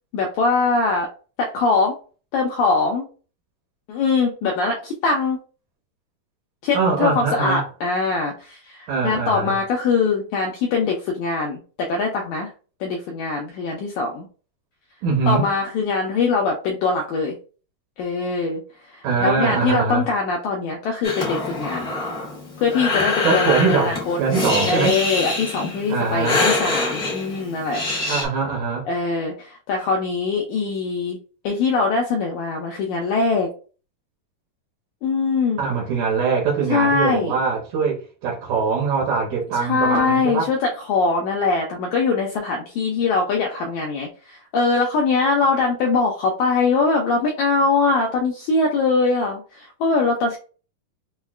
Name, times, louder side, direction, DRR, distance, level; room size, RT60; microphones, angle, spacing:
voice 1, 0.1-1.1 1.4-1.9 2.3-3.0 3.9-5.4 6.6-12.5 12.8-14.3 15.3-17.4 18.0-18.6 18.9-21.9 22.6-24.2 24.7-28.1 28.9-31.2 31.4-33.5 35.0-35.6 36.7-37.3 39.6-50.4, left 4 dB, 85° left, 1.7 m, -22 dB
voice 2, 6.7-7.6 8.9-9.6 15.0-15.5 19.0-20.0 23.2-25.0 25.9-26.4 28.1-28.9 35.6-40.5, right 5 dB, 70° right, 1.9 m, -22 dB
Breathing, 21.0-28.3, left 3 dB, 60° left, 0.5 m, -25 dB
6.2 x 2.2 x 2.3 m
omnidirectional pair, 4.0 m